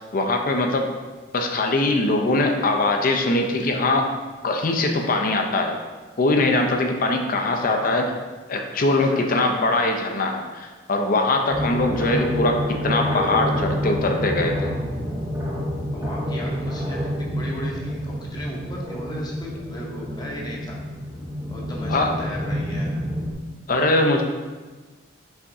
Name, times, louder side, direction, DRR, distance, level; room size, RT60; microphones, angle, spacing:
voice 1, 0.1-0.9 1.3-4.1 4.4-5.8 6.2-8.1 8.5-14.7 21.9-22.2 23.7-24.2, left 2 dB, 50° left, 3 dB, 0.5 m, -22 dB
voice 2, 7.6-8.0 8.8-9.4 11.9-12.4 15.9-20.8 21.5-23.0, left 1 dB, 25° left, -3 dB, 0.8 m, -36 dB
sound 1, 11.5-23.3, equal, 15° right, 0.6 m, -28 dB
5.6 x 3.5 x 2.6 m, 1.3 s
head